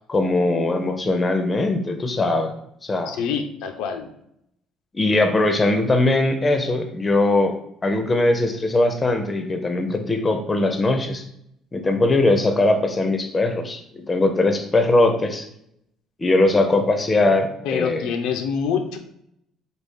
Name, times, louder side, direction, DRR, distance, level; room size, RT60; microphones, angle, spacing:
voice 1, 0.1-2.5 2.8-3.1 4.9-7.5 7.8-11.2 11.7-13.8 14.1-15.5 16.2-18.1, left 2 dB, 20° left, 6 dB, 0.4 m, -20 dB
voice 2, 3.1-4.1 17.6-19.0, left 6 dB, 90° left, 5 dB, 0.4 m, -26 dB
3.3 x 2.3 x 3.5 m, 0.75 s
cardioid pair, 135°, 0 cm